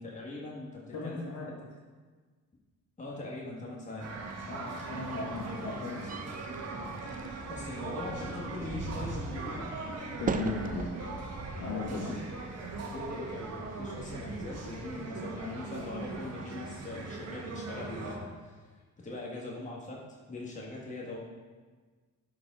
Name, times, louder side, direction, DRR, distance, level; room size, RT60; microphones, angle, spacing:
voice 1, 0.0-1.4 3.0-4.1 7.5-9.7 11.9-12.4 12.9-18.7 19.0-21.2, left 2 dB, 25° left, -3 dB, 1.5 m, -41 dB
voice 2, 0.9-1.5 4.5-6.0 10.2-10.9 11.6-12.2, left 3 dB, 70° left, -4 dB, 2.3 m, -36 dB
sound 1, 4.0-18.2, right 3 dB, 55° right, 1.4 m, -40 dB
sound 2, 6.1-11.2, right 6 dB, 30° right, 0.4 m, -40 dB
10.5 x 4.8 x 3.7 m, 1.4 s
cardioid pair, 90°, 30 cm